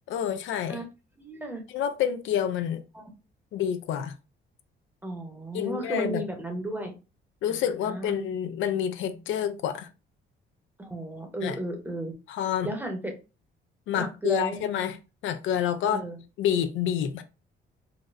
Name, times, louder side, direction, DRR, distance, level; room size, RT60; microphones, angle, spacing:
voice 1, 0.1-0.8 1.7-2.8 3.5-4.1 5.5-6.2 7.4-9.9 11.4-11.6 12.3-12.7 13.9-15.0 15.2-16.0 16.4-17.2, left 9 dB, 80° left, 0.4 m, -28 dB
voice 2, 1.2-1.6 2.9-3.1 5.0-6.9 7.5-7.6 7.9-8.2 10.8-12.1 12.6-13.1 14.0-14.6 15.8-16.2, right 1 dB, 10° right, 0.9 m, -34 dB
3.9 x 2.1 x 2.5 m
cardioid pair, 90°, 20 cm